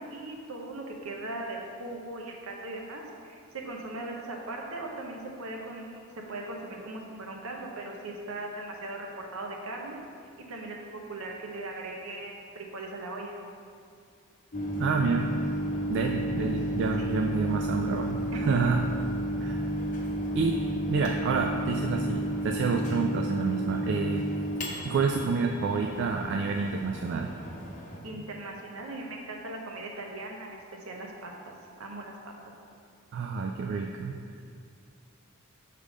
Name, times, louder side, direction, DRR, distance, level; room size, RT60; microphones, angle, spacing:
voice 1, 0.0-6.0 6.3-10.0 10.4-10.8 11.1-13.3 17.0-17.1 17.4-17.5 18.3-18.6 28.0-30.6 30.9-31.5 31.8-32.3, right 2 dB, 75° right, 0 dB, 0.9 m, -39 dB
Microwave oven, 14.5-28.0, equal, 35° left, 0.8 m, -32 dB
voice 2, 14.8-15.3 15.9-18.8 19.4-19.6 20.3-24.2 24.8-27.3 33.1-34.2, right 4 dB, 55° right, 3 dB, 0.3 m, -28 dB
6.6 x 3.6 x 4.9 m, 2.4 s
head